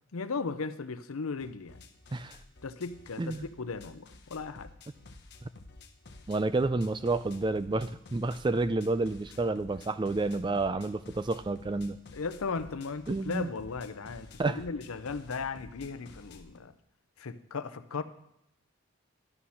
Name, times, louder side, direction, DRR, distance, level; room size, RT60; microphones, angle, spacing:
voice 1, 0.1-1.8 2.6-4.7 12.1-16.7 17.2-18.0, left 4 dB, 90° left, 12 dB, 0.6 m, -36 dB
sound 1, 1.4-16.6, left 2 dB, 50° left, 0.8 m, -52 dB
voice 2, 6.3-12.0 13.1-13.5 14.4-14.6, right 2 dB, 20° right, 13 dB, 0.3 m, -30 dB
11.0 x 6.4 x 5.7 m, 0.81 s
head